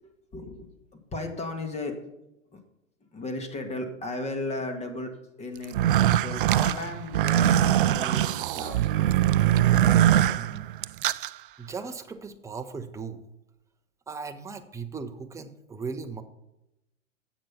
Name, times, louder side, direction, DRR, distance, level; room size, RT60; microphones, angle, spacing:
voice 1, 0.3-0.7 1.1-2.0 3.1-5.1 5.4-10.6, left 2 dB, 15° left, 5 dB, 1.9 m, -36 dB
sound 1, 5.6-11.3, right 12 dB, 45° right, 0.4 m, -22 dB
voice 2, 11.6-13.2 14.1-16.2, right 5 dB, 10° right, 7 dB, 0.8 m, -37 dB
11.5 x 8.1 x 5.7 m, 0.89 s
figure-of-eight pair, 105°, 38 cm